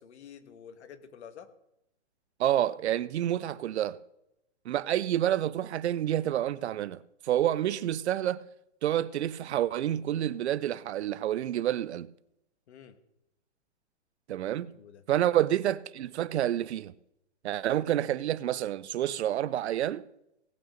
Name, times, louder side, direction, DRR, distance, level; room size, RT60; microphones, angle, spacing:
voice 1, 0.0-1.5 12.7-13.0 14.7-15.0, left 8 dB, 65° left, 1.7 m, -49 dB
voice 2, 2.4-4.0 4.7-8.4 8.8-12.1 14.3-14.7 15.1-16.9 17.4-20.0, right 12 dB, 65° right, 0.7 m, -28 dB
18.0 x 6.4 x 6.5 m
hypercardioid pair, 135°, 35 cm